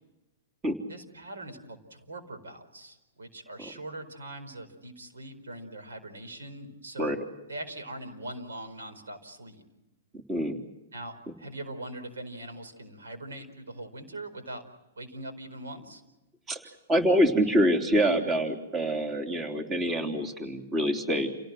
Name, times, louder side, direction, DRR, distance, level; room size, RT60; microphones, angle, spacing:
voice 1, 0.9-7.2 7.5-9.6 10.9-14.6 15.0-16.0, right 1 dB, 90° right, 8 dB, 4.6 m, -41 dB
voice 2, 16.9-21.3, equal, 20° right, 4 dB, 3.5 m, -25 dB
29.5 x 18.0 x 7.7 m, 1.0 s
hypercardioid pair, 120°, 0 cm